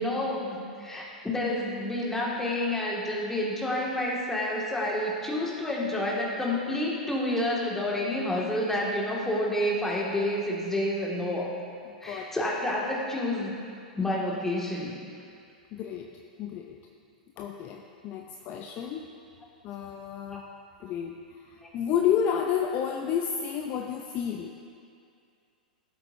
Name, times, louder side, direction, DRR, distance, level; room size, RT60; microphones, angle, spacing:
voice 1, 0.0-11.5 12.0-13.6 14.0-14.9 21.6-21.7, left 1 dB, 5° left, -4 dB, 2.1 m, -29 dB
voice 2, 15.7-16.1 16.4-16.8 17.4-19.1 19.6-20.4 20.8-24.5, left 8 dB, 40° left, 3 dB, 0.6 m, -30 dB
16.0 x 8.0 x 2.7 m, 2.4 s
hypercardioid pair, 100°, 5 cm